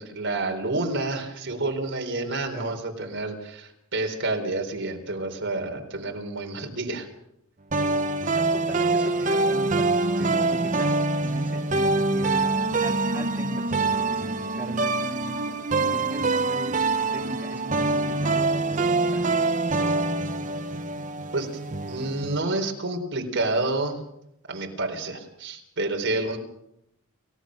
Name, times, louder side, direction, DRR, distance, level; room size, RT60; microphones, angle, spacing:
voice 1, 0.0-7.1 21.3-21.5 21.9-24.0 24.5-26.4, right 2 dB, 55° right, 3 dB, 4.0 m, -29 dB
sound 1, 7.7-22.4, right 3 dB, 35° right, 0.9 m, -25 dB
voice 2, 8.2-16.7 17.0-19.3, equal, 10° right, -1 dB, 2.8 m, -39 dB
29.5 x 16.5 x 6.4 m, 0.79 s
head